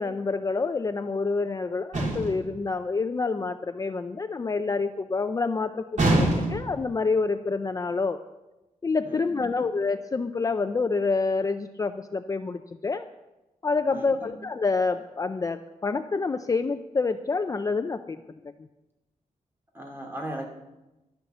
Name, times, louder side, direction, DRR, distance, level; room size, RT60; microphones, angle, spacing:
voice 1, 0.0-8.2 8.8-13.0 13.6-18.2, left 4 dB, 25° left, 9 dB, 0.5 m, -27 dB
sound 1, 1.9-2.5 6.0-6.8, right 1 dB, 70° right, 3.9 m, -24 dB
voice 2, 9.0-9.7 13.9-14.4 19.7-20.5, right 1 dB, 15° right, 0 dB, 2.7 m, -38 dB
12.0 x 11.5 x 6.7 m, 1.0 s
wide cardioid pair, 160°, 13 cm